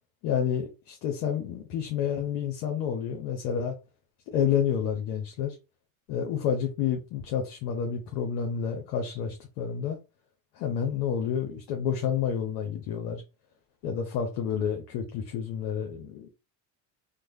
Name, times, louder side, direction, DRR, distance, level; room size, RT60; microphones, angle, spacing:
voice 1, 0.2-3.7 4.3-5.6 6.1-10.0 10.5-13.2 13.8-16.3, left 8 dB, 80° left, 0.7 m, -29 dB
3.2 x 2.1 x 2.6 m
hypercardioid pair, 65°, 46 cm